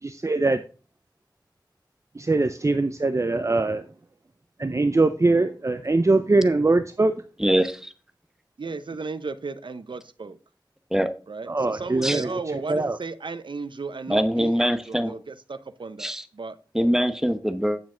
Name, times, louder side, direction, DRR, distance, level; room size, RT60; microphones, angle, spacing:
voice 1, 0.0-0.6 2.1-3.9 4.6-7.1 11.5-12.4 12.7-13.0, right 2 dB, 40° right, 10 dB, 0.6 m, -22 dB
voice 2, 7.4-7.9 10.9-11.1 12.0-12.2 14.1-15.1 16.0-16.2 16.7-17.8, equal, 5° right, 10 dB, 0.9 m, -23 dB
voice 3, 8.6-10.4 11.3-16.6, right 4 dB, 85° right, 13 dB, 0.7 m, -35 dB
9.5 x 7.4 x 3.8 m, 0.36 s
wide cardioid pair, 65°, 8 cm